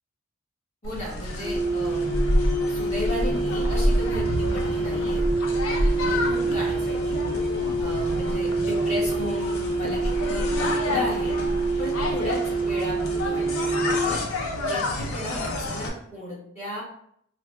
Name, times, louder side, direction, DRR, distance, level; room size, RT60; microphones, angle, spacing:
sound 1, 0.8-15.9, left 1 dB, 85° left, 0.6 m, -28 dB
voice 1, 0.8-2.2 2.7-5.2 5.9-7.2 7.8-11.3 11.8-14.2 14.7-16.8, left 1 dB, 30° left, -7 dB, 1.4 m, -35 dB
sound 2, 1.4-14.1, right 3 dB, 40° right, 0.7 m, -27 dB
4.6 x 2.1 x 2.3 m, 0.69 s
head